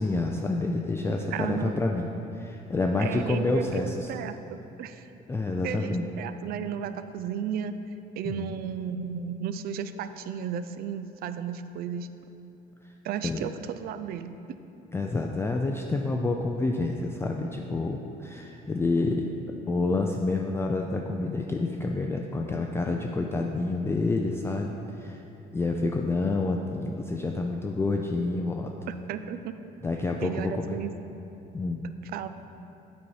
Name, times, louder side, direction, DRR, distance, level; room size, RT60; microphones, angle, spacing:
voice 1, 0.0-2.1 2.3-4.1 5.3-6.1 8.3-8.5 13.2-13.5 14.9-19.3 19.7-25.2 25.5-28.7 29.8-30.8 31.5-31.8, left 3 dB, 15° left, 1 dB, 0.3 m, -28 dB
voice 2, 1.3-1.8 3.0-5.1 5.6-7.7 8.2-12.1 13.0-14.3 28.9-29.5 30.2-30.9 32.1-32.3, right 8 dB, 65° right, 11 dB, 0.4 m, -34 dB
8.4 x 4.2 x 4.6 m, 2.9 s
cardioid pair, 110°, 17 cm